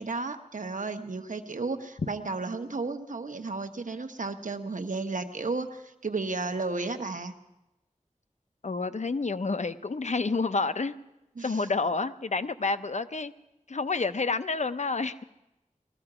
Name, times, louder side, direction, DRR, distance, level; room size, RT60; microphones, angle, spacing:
voice 1, 0.0-7.3 11.4-11.7, right 3 dB, 80° right, 7 dB, 1.0 m, -33 dB
voice 2, 8.6-10.9 11.4-13.3 13.7-15.2, left 3 dB, 65° left, 12 dB, 0.6 m, -29 dB
20.0 x 14.0 x 4.9 m, 0.93 s
wide cardioid pair, 45°, 13 cm